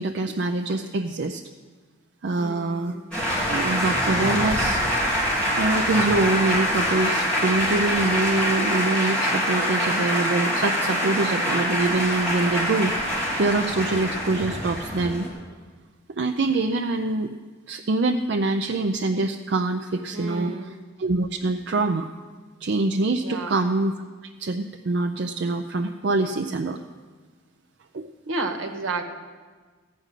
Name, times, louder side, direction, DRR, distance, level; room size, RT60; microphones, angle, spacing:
voice 1, 0.0-1.4 2.2-3.0 3.5-4.8 5.6-12.9 13.3-15.3 16.2-17.3 17.7-20.5 21.0-22.1 22.6-23.9 24.4-26.8 27.9-28.1, right 2 dB, 60° right, 4 dB, 0.5 m, -24 dB
voice 2, 2.4-3.0 20.1-20.7 23.2-23.6 28.2-29.0, right 3 dB, 75° right, 5 dB, 1.3 m, -31 dB
Male speech man speaking, 3.1-15.3, equal, 5° left, 3.6 m, -24 dB
15.5 x 5.2 x 9.0 m, 1.5 s
head